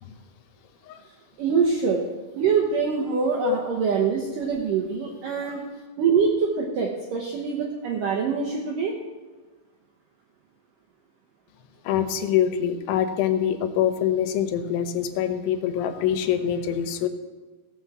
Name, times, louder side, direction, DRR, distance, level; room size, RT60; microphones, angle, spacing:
voice 1, 1.4-2.0 2.4-5.6 6.0-9.0, right 5 dB, 80° right, 0 dB, 1.9 m, -24 dB
voice 2, 11.8-17.1, left 9 dB, 85° left, 9 dB, 3.3 m, -25 dB
16.5 x 6.2 x 7.3 m, 1.3 s
omnidirectional pair, 5.3 m